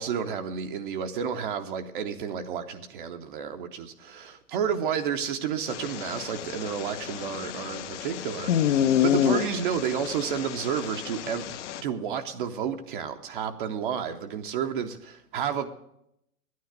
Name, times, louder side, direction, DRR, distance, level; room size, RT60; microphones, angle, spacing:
voice 1, 0.0-15.7, right 7 dB, 35° right, 0.7 m, -31 dB
sound 1, 5.7-11.8, left 9 dB, 50° left, 0.8 m, -28 dB
11.0 x 9.4 x 8.0 m
hypercardioid pair, 125°, 46 cm